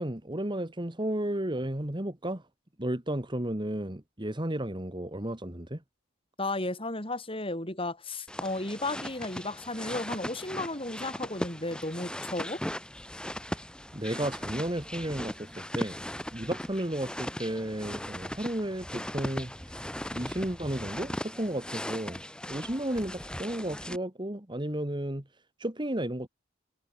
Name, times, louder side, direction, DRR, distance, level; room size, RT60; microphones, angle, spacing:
voice 1, 0.0-2.4 2.8-5.8 13.5-13.6 13.9-16.0 16.3-19.8 20.1-25.2 25.6-26.3, right 1 dB, 20° right, 1.9 m, -33 dB
voice 2, 6.4-12.6, left 2 dB, 25° left, 7.7 m, -34 dB
sound 1, 8.3-24.0, left 1 dB, 5° left, 1.6 m, -38 dB
head